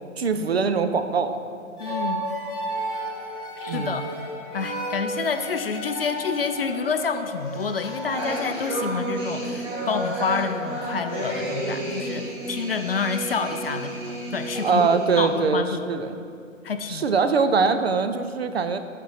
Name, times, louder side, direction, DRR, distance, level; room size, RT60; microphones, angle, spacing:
voice 1, 0.2-1.4 3.7-4.0 14.6-16.2 16.9-18.8, right 5 dB, 50° right, 10 dB, 0.5 m, -22 dB
voice 2, 1.8-2.3 3.6-4.1 4.5-14.9 15.2-15.9 16.6-17.3, left 5 dB, 50° left, 8 dB, 0.4 m, -28 dB
sound 1, 1.8-8.6, right 1 dB, 10° left, 1.1 m, -33 dB
sound 2, 7.5-15.4, right 1 dB, 20° right, 1.1 m, -31 dB
8.1 x 4.2 x 5.5 m, 2.4 s
hypercardioid pair, 150°, 40 cm